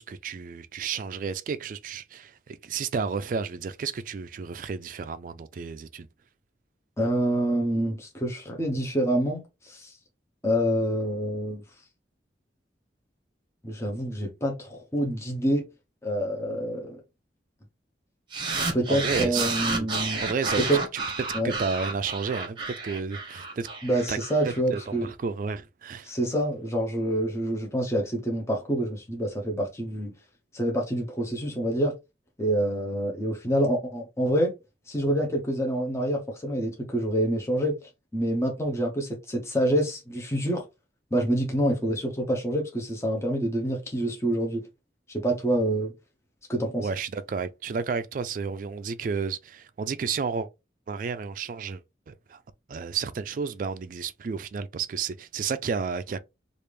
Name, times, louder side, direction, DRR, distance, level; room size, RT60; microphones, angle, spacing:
voice 1, 0.0-6.1 18.9-19.5 19.8-19.9 20.2-20.8 21.4-23.7 24.1-24.2 24.4-26.1 46.8-50.5 50.9-52.4 52.7-56.2, right 5 dB, 45° right, 0.3 m, -32 dB
voice 2, 7.0-9.9 10.4-11.6 13.6-15.7 16.0-17.0 18.7-20.2 20.6-20.8 21.3-21.5 23.8-25.1 26.0-30.1 30.5-32.0 32.4-34.5 34.9-40.6 41.1-44.7 45.1-45.9 46.5-46.9, right 1 dB, 15° left, 0.6 m, -27 dB
FX Breakdown, 18.3-24.8, right 3 dB, 25° right, 0.9 m, -31 dB
3.3 x 2.4 x 3.2 m
head